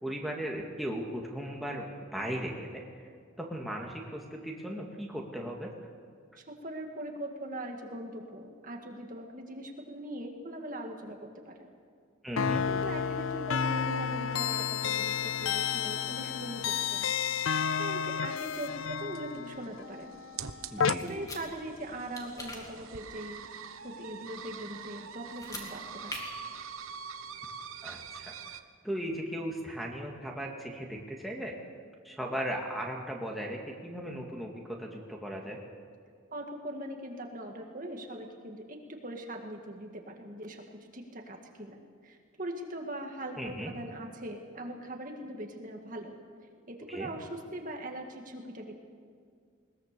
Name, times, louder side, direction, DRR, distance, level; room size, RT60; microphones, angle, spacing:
voice 1, 0.0-2.8 3.4-5.7 12.2-12.6 20.7-21.2 27.8-28.3 28.8-31.5 32.0-35.6 43.4-43.7 46.9-47.1, equal, ahead, -1 dB, 2.1 m, -37 dB
voice 2, 6.4-11.7 12.3-17.1 17.8-20.2 20.8-23.5 23.8-26.2 36.3-46.2 46.7-48.7, right 1 dB, 40° right, 2 dB, 2.0 m, -41 dB
sound 1, 12.4-21.0, left 7 dB, 65° left, 0.5 m, -31 dB
sound 2, 13.6-28.6, right 7 dB, 75° right, 1.1 m, -46 dB
sound 3, 21.0-21.4 22.1-22.6 25.3-25.7 26.1-26.2, left 1 dB, 15° left, 2.8 m, -41 dB
21.0 x 20.5 x 6.9 m, 2.2 s
head